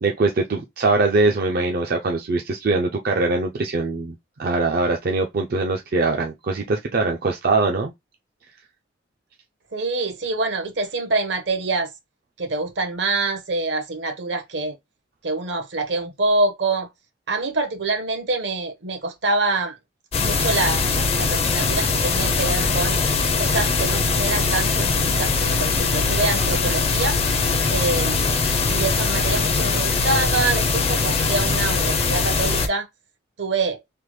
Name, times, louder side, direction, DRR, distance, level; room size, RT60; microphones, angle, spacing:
voice 1, 0.0-4.1 4.4-7.9, right 3 dB, 50° right, 0.4 m, -22 dB
voice 2, 9.7-11.9 12.4-14.8 15.2-16.9 17.3-19.8 20.2-23.0 23.4-27.2 27.7-28.4 28.7-32.9 33.4-33.8, right 3 dB, 75° right, 0.9 m, -25 dB
sound 1, 20.1-32.7, left 4 dB, 35° left, 0.5 m, -21 dB
3.4 x 2.1 x 3.0 m
head